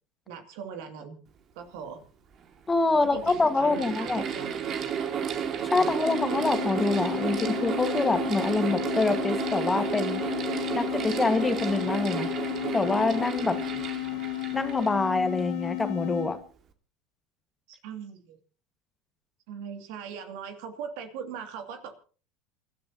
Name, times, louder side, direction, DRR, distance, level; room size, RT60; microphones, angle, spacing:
voice 1, 0.3-1.2 1.5-2.0 2.9-4.9 5.7-5.9 17.7-18.4 19.5-22.0, right 7 dB, 70° right, 6 dB, 2.6 m, -40 dB
Mechanical fan, 2.0-2.1 2.9-15.6, right 7 dB, 45° right, 2.2 m, -32 dB
voice 2, 2.7-4.2 5.7-10.2 10.7-12.3 12.7-13.6 14.5-16.4, left 3 dB, 15° left, 8 dB, 1.8 m, -26 dB
sound 1, 6.0-16.4, left 24 dB, 65° left, 1.2 m, -33 dB
28.0 x 12.5 x 2.9 m, 0.38 s
hypercardioid pair, 85°, 0 cm